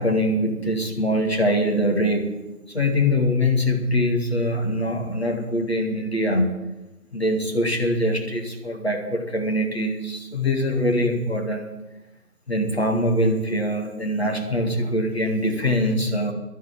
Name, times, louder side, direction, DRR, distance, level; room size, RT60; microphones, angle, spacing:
voice 1, 0.0-2.3 2.7-6.5 7.1-11.7 12.5-16.3, left 1 dB, 40° left, 2 dB, 2.2 m, -23 dB
11.0 x 10.0 x 8.6 m, 1.0 s
figure-of-eight pair, 170°, 47 cm